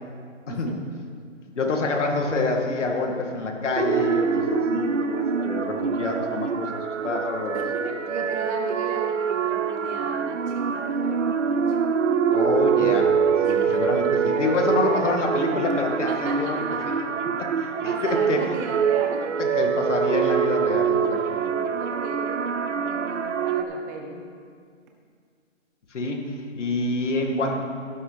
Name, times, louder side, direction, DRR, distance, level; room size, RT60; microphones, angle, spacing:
voice 1, 1.6-6.7 7.0-7.6 12.3-13.2 13.5-16.6 16.9-17.0 17.4-18.4 19.4-21.5 25.9-27.6, left 3 dB, 70° left, 2 dB, 2.1 m, -27 dB
sound 1, 3.8-23.6, right 6 dB, 75° right, 0.9 m, -25 dB
voice 2, 7.5-11.8 13.4-13.9 16.1-17.0 17.6-19.4 21.1-24.2, right 3 dB, 15° right, 2 dB, 0.7 m, -36 dB
12.5 x 10.0 x 4.0 m, 2.2 s
hypercardioid pair, 150°, 38 cm